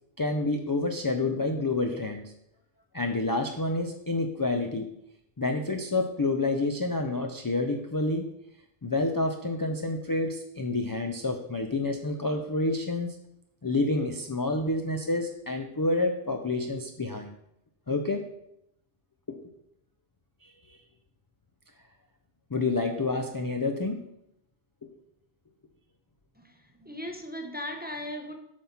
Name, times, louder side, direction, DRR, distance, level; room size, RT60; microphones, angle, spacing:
voice 1, 0.2-2.3 2.9-4.9 5.4-8.3 8.8-13.2 13.6-17.3 17.9-18.3 19.3-19.4 20.4-20.8 22.5-24.0 24.8-24.9, left 2 dB, 30° left, 4 dB, 0.4 m, -28 dB
voice 2, 26.4-28.3, left 1 dB, 10° right, 3 dB, 0.7 m, -38 dB
7.4 x 5.6 x 4.3 m, 0.80 s
omnidirectional pair, 1.0 m